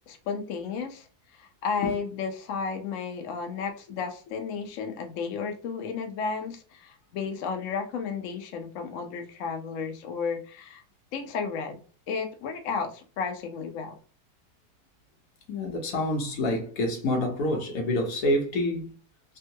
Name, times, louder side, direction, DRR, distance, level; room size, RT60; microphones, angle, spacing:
voice 1, 0.1-1.1 1.3-10.8 11.1-13.9, left 5 dB, 85° left, 0.7 m, -33 dB
voice 2, 15.5-18.9, left 1 dB, 60° left, 1.0 m, -27 dB
3.5 x 2.3 x 2.7 m
omnidirectional pair, 2.2 m